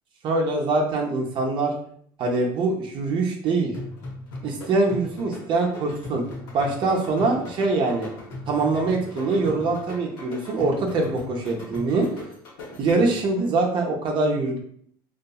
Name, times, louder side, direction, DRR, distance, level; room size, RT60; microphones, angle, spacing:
voice 1, 0.2-1.7 2.2-3.7 4.4-6.2 6.5-8.1 8.5-12.1 12.8-14.6, right 3 dB, 50° right, 0 dB, 0.6 m, -23 dB
sound 1, 3.7-13.3, left 2 dB, 85° left, 0.9 m, -39 dB
2.6 x 2.4 x 2.3 m, 0.63 s
supercardioid pair, 90°, 11 cm